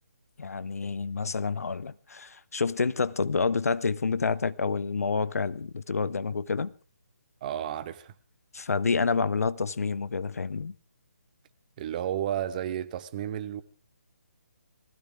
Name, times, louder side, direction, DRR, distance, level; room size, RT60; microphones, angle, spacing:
voice 1, 0.4-6.7 8.5-10.7, left 4 dB, 70° left, 0.8 m, -28 dB
voice 2, 7.4-8.1 11.8-13.6, right 10 dB, 30° right, 1.2 m, -32 dB
19.5 x 16.0 x 3.6 m
figure-of-eight pair, 150°, 8 cm